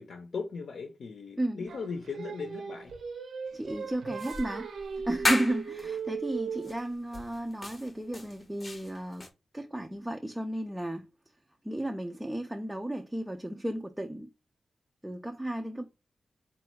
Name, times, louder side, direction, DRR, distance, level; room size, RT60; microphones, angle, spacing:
voice 1, 0.0-2.9, left 5 dB, 75° left, 0.6 m, -38 dB
Singing, 1.7-6.9, right 6 dB, 75° right, 0.7 m, -38 dB
voice 2, 3.5-4.7 5.0-9.2 9.5-11.1 11.6-14.3 15.0-15.9, right 1 dB, 10° right, 0.3 m, -33 dB
sound 1, 4.2-5.9 6.6-6.8 7.1-9.3, left 2 dB, 25° left, 0.7 m, -34 dB
4.1 x 2.3 x 4.4 m
wide cardioid pair, 155°, 0 cm